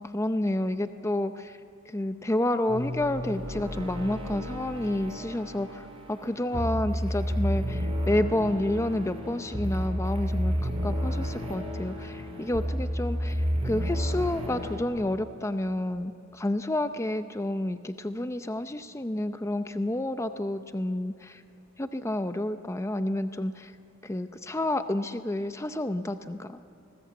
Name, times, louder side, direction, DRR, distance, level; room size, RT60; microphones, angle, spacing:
voice 1, 0.0-1.6 1.9-21.4 21.8-23.7 24.0-26.6, left 1 dB, 15° left, 9 dB, 0.6 m, -30 dB
sound 1, 2.7-14.8, equal, 25° right, 4.6 m, -31 dB
28.5 x 20.0 x 8.4 m, 2.7 s
head